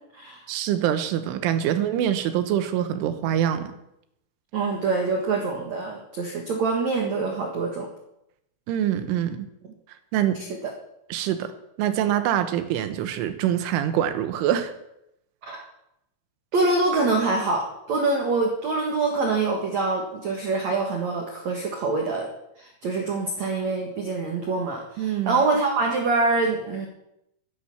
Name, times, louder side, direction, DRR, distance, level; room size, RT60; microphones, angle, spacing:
voice 1, 0.5-3.7 8.7-9.5 10.1-10.4 11.1-11.5 11.8-14.7 25.0-25.4, right 10 dB, 80° right, 9 dB, 3.6 m, -24 dB
voice 2, 4.5-7.9 15.4-15.6 16.5-22.3 22.6-26.9, right 3 dB, 55° right, 1 dB, 2.1 m, -25 dB
13.0 x 11.0 x 7.3 m, 0.81 s
omnidirectional pair, 5.6 m